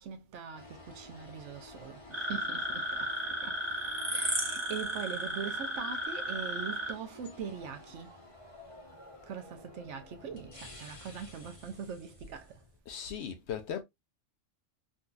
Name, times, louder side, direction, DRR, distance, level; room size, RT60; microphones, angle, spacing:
voice 1, 0.0-3.6 4.1-8.3 9.2-12.7, right 7 dB, 70° right, 0.9 m, -42 dB
Scifi Elevator Start Moving and Stop, 0.5-12.8, left 2 dB, 30° left, 0.8 m, -52 dB
sound 1, 2.1-6.9, equal, 20° right, 1.1 m, -34 dB
voice 2, 12.9-13.8, left 8 dB, 65° left, 0.8 m, -37 dB
3.9 x 2.5 x 2.3 m
omnidirectional pair, 1.3 m